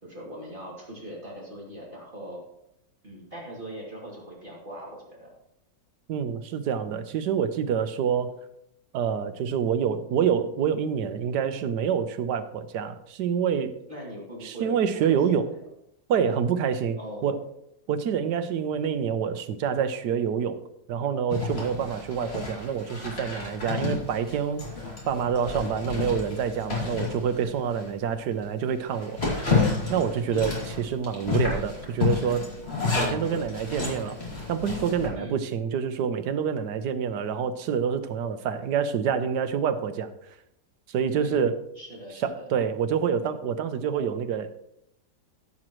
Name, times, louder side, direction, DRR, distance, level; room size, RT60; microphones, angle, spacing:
voice 1, 0.0-2.4 3.0-5.3 13.9-14.8 15.0-15.6 17.0-17.4 23.7-24.0 30.3-30.6 35.1-35.4 41.2-41.5 41.8-42.5, equal, 30° right, -5 dB, 2.6 m, -40 dB
voice 2, 6.1-8.3 8.9-13.8 14.4-15.5 16.1-17.0 17.2-17.4 17.9-20.6 20.9-24.6 25.1-29.2 29.9-32.5 32.9-34.2 34.5-40.1 40.9-41.6 42.2-44.5, right 7 dB, 75° right, 10 dB, 1.3 m, -27 dB
Zipper (clothing), 21.3-27.9 28.3-28.4 28.8-35.1, left 3 dB, 35° left, 2.8 m, -30 dB
14.5 x 7.6 x 3.0 m, 0.77 s
omnidirectional pair, 1.8 m